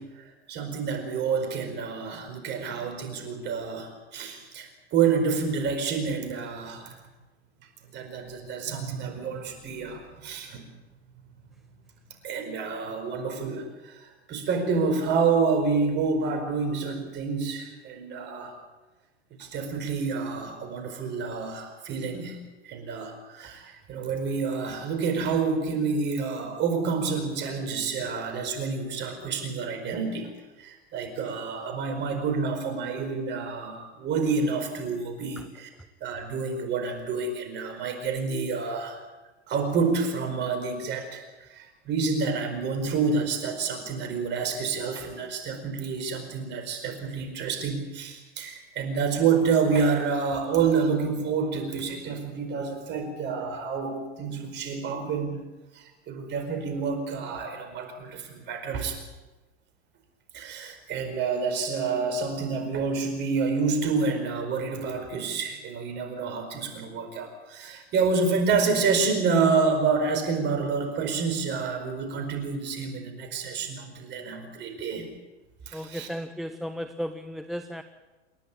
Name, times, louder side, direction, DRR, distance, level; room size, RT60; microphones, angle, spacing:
voice 1, 0.0-6.9 7.9-10.7 12.2-18.5 19.4-22.4 22.6-30.3 30.6-35.7 36.0-39.0 39.5-41.2 41.5-55.4 55.7-59.0 60.3-75.1 75.7-76.1, right 5 dB, 30° right, 5 dB, 4.8 m, -28 dB
voice 2, 75.7-77.8, equal, ahead, 10 dB, 0.6 m, -34 dB
28.0 x 11.0 x 8.6 m, 1.2 s
hypercardioid pair, 125°, 33 cm